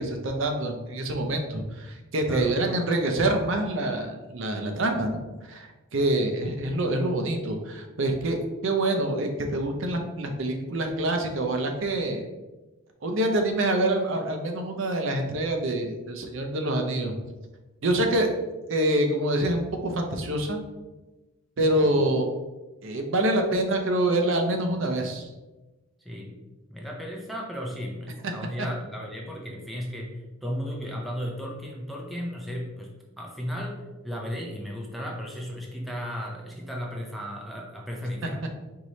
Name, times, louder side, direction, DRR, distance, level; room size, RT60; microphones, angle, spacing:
voice 1, 0.0-5.2 5.4-8.4 8.6-12.2 13.0-17.2 17.8-18.3 18.7-20.6 21.6-22.3 22.8-25.3 38.2-38.3, right 1 dB, 60° right, 4 dB, 0.6 m, -26 dB
voice 2, 2.3-2.6 21.8-21.9 26.0-26.4 26.7-38.4, equal, ahead, -2 dB, 0.4 m, -35 dB
4.6 x 3.1 x 2.7 m, 1.1 s
head